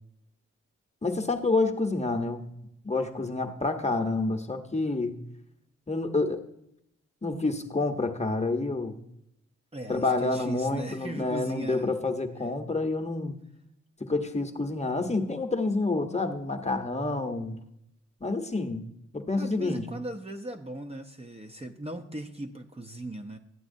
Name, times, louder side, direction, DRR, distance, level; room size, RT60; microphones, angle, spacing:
voice 1, 1.0-2.5 2.8-5.2 5.9-6.4 7.2-9.0 9.9-13.3 14.0-17.6 18.2-18.9 19.1-19.8, left 3 dB, 20° left, 5 dB, 1.0 m, -28 dB
voice 2, 9.7-11.9 12.4-12.5 19.4-23.4, right 1 dB, 20° right, 4 dB, 0.8 m, -38 dB
12.5 x 8.1 x 2.7 m, 0.77 s
supercardioid pair, 45°, 31 cm